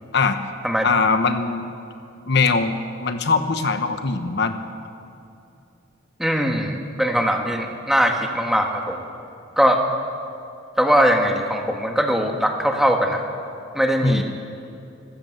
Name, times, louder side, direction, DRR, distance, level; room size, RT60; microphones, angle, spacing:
voice 1, 0.8-1.7 2.3-2.7 3.0-4.6 14.0-14.2, left 4 dB, 55° left, 8 dB, 1.0 m, -21 dB
voice 2, 6.2-9.0 9.6-9.8 10.8-13.2 13.7-14.2, equal, ahead, 2 dB, 1.6 m, -20 dB
25.0 x 14.5 x 7.9 m, 2.6 s
head